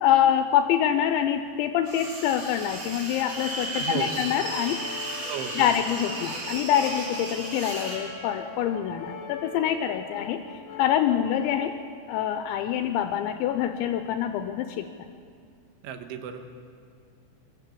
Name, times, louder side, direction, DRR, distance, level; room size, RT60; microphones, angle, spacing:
voice 1, 0.0-4.8 5.6-10.4 10.8-11.7 12.1-14.9, left 10 dB, 85° left, 8 dB, 3.0 m, -25 dB
sound 1, 1.9-8.0, right 2 dB, 50° right, 6.5 m, -35 dB
Brass instrument, 3.2-11.8, left 4 dB, 55° left, 3.2 m, -42 dB
voice 2, 3.7-4.2 5.3-5.8 15.8-16.4, right 8 dB, 90° right, 7 dB, 3.7 m, -34 dB
21.5 x 14.5 x 8.5 m, 2.3 s
omnidirectional pair, 5.3 m